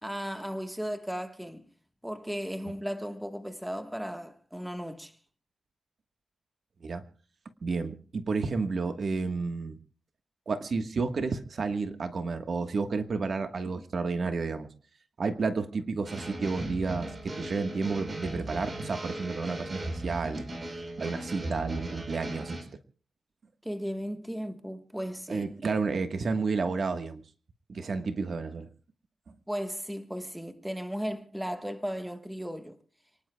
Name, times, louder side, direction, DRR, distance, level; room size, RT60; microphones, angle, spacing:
voice 1, 0.0-1.7 2.0-5.2 23.6-25.5 29.5-32.8, equal, 5° right, 1.3 m, -36 dB
voice 2, 7.6-9.8 10.5-14.7 15.2-20.4 21.0-22.6 25.3-27.2 27.7-28.7, right 4 dB, 50° right, 1.4 m, -31 dB
sound 1, 16.1-22.6, right 1 dB, 30° right, 4.1 m, -37 dB
29.0 x 19.5 x 2.3 m
wide cardioid pair, 125°, 0 cm